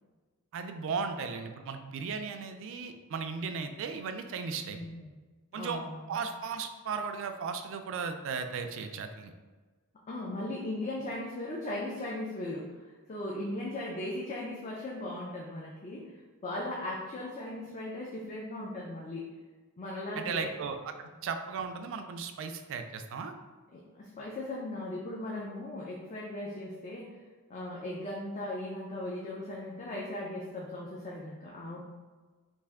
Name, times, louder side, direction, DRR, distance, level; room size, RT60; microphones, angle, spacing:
voice 1, 0.5-4.8 5.5-5.8 6.1-9.3 20.2-20.9 21.2-23.3, right 5 dB, 60° right, 7 dB, 0.3 m, -36 dB
voice 2, 4.7-5.1 5.5-6.2 10.1-19.3 19.8-20.5 21.0-21.1 23.7-27.2 27.5-31.8, left 1 dB, 30° left, -4 dB, 0.4 m, -38 dB
3.3 x 2.5 x 3.5 m, 1.4 s
head